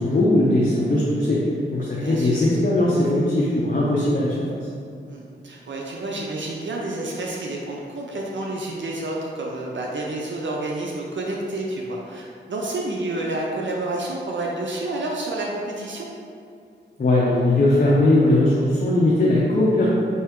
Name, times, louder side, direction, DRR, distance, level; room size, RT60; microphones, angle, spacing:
voice 1, 0.0-1.4 1.7-4.3 17.0-19.9, left 1 dB, 45° left, -6 dB, 0.7 m, -19 dB
voice 2, 2.0-2.4 5.1-16.1, right 2 dB, 75° right, -2 dB, 0.5 m, -29 dB
4.4 x 2.8 x 3.6 m, 2.4 s
cardioid pair, 60°, 20 cm